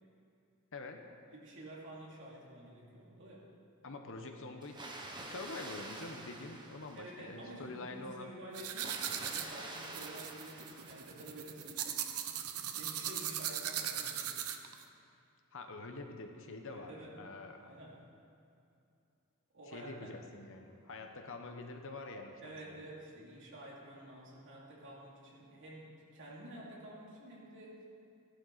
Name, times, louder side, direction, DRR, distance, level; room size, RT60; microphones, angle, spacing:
voice 1, 0.7-1.0 3.8-4.8 5.2-8.3 15.5-17.7 19.7-22.8, left 2 dB, 60° left, 4 dB, 1.1 m, -46 dB
voice 2, 1.3-3.5 7.0-12.0 12.7-14.5 16.7-17.2 17.6-18.0 19.5-20.1 22.4-27.8, right 1 dB, 60° right, -4 dB, 2.9 m, -50 dB
Water, 4.6-7.4 8.7-11.5, right 2 dB, 20° right, 1.2 m, -48 dB
sound 1, 8.5-14.8, right 10 dB, 80° right, 0.8 m, -39 dB
16.0 x 11.5 x 4.2 m, 2.6 s
head